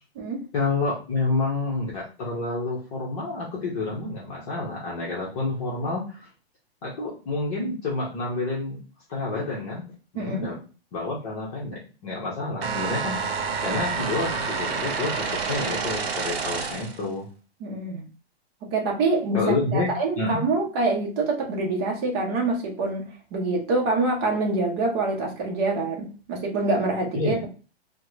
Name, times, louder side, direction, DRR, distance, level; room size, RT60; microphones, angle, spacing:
voice 1, 0.5-6.3 6.8-8.8 9.1-9.8 10.1-10.6 10.9-17.3 19.3-20.4 27.1-27.4, left 3 dB, 35° left, 0.8 m, -29 dB
voice 2, 10.1-10.5 17.6-18.1 18.6-19.5 19.7-27.5, right 3 dB, 25° right, 0.7 m, -26 dB
sound 1, 12.6-17.0, right 5 dB, 65° right, 0.8 m, -28 dB
3.5 x 2.1 x 3.1 m
hypercardioid pair, 165°, 32 cm